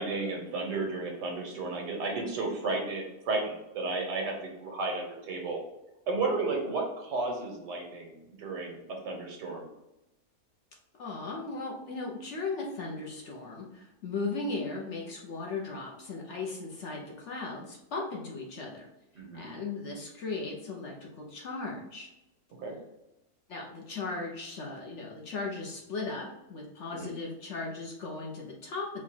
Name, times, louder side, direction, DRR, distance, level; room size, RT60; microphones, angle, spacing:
voice 1, 0.0-5.6 6.1-9.7 19.1-19.5 22.6-22.8 26.9-27.1, right 3 dB, 85° right, 1 dB, 1.7 m, -33 dB
voice 2, 11.0-18.9 19.3-22.1 23.5-29.0, left 3 dB, 55° left, -1 dB, 1.0 m, -37 dB
4.8 x 2.4 x 4.2 m, 0.92 s
omnidirectional pair, 1.7 m